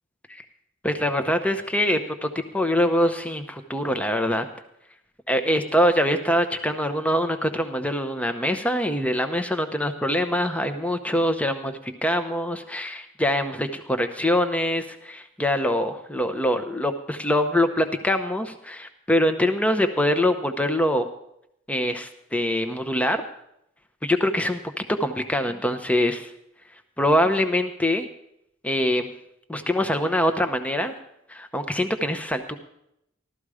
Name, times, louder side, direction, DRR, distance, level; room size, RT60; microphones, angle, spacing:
voice 1, 0.8-4.4 5.3-21.0 21.7-23.2 24.0-26.3 27.0-28.1 28.6-29.1 29.5-30.9 31.3-32.5, left 1 dB, 5° left, 7 dB, 0.7 m, -24 dB
14.5 x 13.0 x 4.9 m, 0.78 s
head